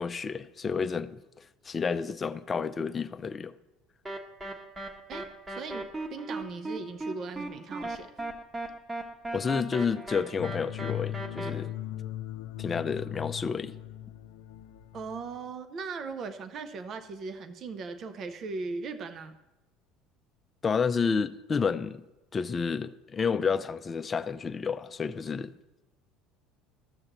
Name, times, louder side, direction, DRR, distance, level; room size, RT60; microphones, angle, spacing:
voice 1, 0.0-3.5 9.3-11.7 12.6-13.7 20.6-22.0 22.3-25.5, left 5 dB, 30° left, 0.5 m, -30 dB
sound 1, 4.1-11.5, right 2 dB, 15° right, 1.1 m, -37 dB
voice 2, 5.1-8.1 14.9-19.4, right 4 dB, 50° right, 0.6 m, -38 dB
sound 2, 10.4-15.5, left 13 dB, 80° left, 0.5 m, -38 dB
13.5 x 6.4 x 3.0 m
supercardioid pair, 90°, 0 cm